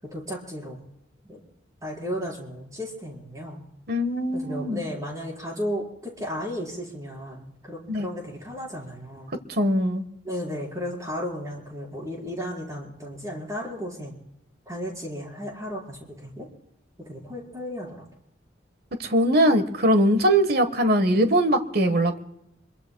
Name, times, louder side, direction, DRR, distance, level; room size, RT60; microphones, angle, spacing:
voice 1, 0.0-0.8 1.2-1.4 1.8-3.6 4.3-9.4 10.2-14.2 14.6-16.5 17.0-18.1, equal, 15° right, -2 dB, 4.9 m, -34 dB
voice 2, 3.9-4.8 7.9-8.1 9.5-10.0 19.0-22.2, equal, 55° right, 9 dB, 1.4 m, -21 dB
27.0 x 22.5 x 2.3 m, 0.84 s
head